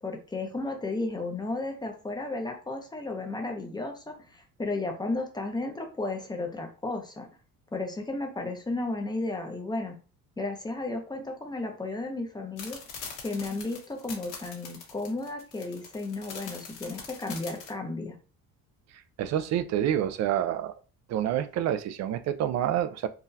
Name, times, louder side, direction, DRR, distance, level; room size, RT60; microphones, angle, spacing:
voice 1, 0.0-7.3 7.7-10.0 10.4-12.8 13.2-18.2, left 2 dB, 10° left, 3 dB, 0.6 m, -33 dB
sound 1, 12.6-17.7, left 5 dB, 55° left, 1.4 m, -42 dB
voice 2, 19.2-20.7 21.1-23.1, right 11 dB, 45° right, 12 dB, 0.4 m, -27 dB
3.8 x 2.3 x 2.7 m, 0.36 s
cardioid pair, 120°, 37 cm